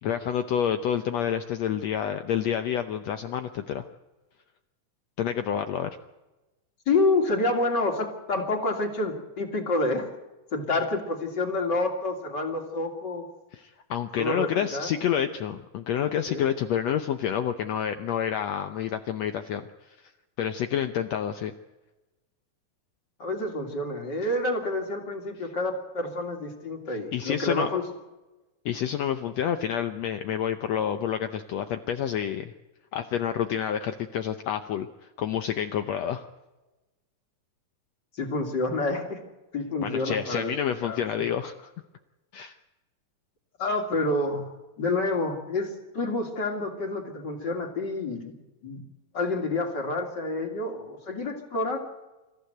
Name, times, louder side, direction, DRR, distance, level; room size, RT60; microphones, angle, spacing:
voice 1, 0.0-3.9 5.2-5.9 13.5-19.6 20.0-20.1 20.4-21.5 26.9-27.7 28.6-32.5 32.9-36.3 39.8-41.7 42.3-42.5, left 9 dB, 70° left, 8 dB, 1.7 m, -28 dB
voice 2, 6.9-10.1 10.5-13.3 14.2-14.9 16.3-16.5 23.2-27.8 38.1-39.2 39.5-40.5 40.8-41.2 43.6-44.5 44.8-48.3 48.6-48.8 49.1-51.8, left 2 dB, 35° left, 3 dB, 3.1 m, -28 dB
26.5 x 15.0 x 7.9 m, 1.1 s
omnidirectional pair, 3.9 m